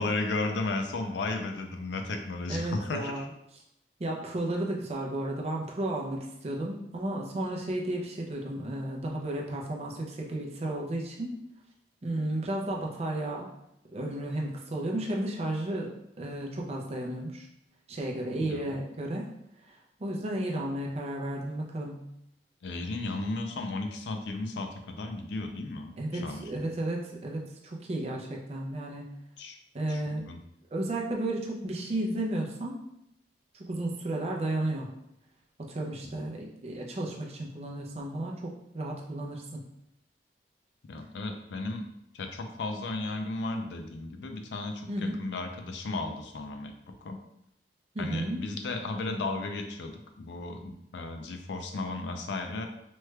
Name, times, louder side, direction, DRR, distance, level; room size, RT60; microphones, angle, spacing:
voice 1, 0.0-3.3 18.3-18.7 22.6-26.4 29.4-29.6 29.9-30.4 36.2-36.3 40.9-41.8 42.1-46.7 47.0-47.2 48.0-52.6, left 2 dB, 80° left, 5 dB, 0.4 m, -34 dB
voice 2, 2.5-3.2 4.0-11.3 12.0-13.5 13.9-17.5 17.9-19.3 20.0-22.0 26.0-29.0 29.7-30.2 30.7-32.8 33.5-34.9 35.7-39.6 44.9-45.2 47.9-48.4, right 1 dB, 35° right, -1 dB, 0.5 m, -33 dB
3.1 x 2.3 x 3.2 m, 0.79 s
head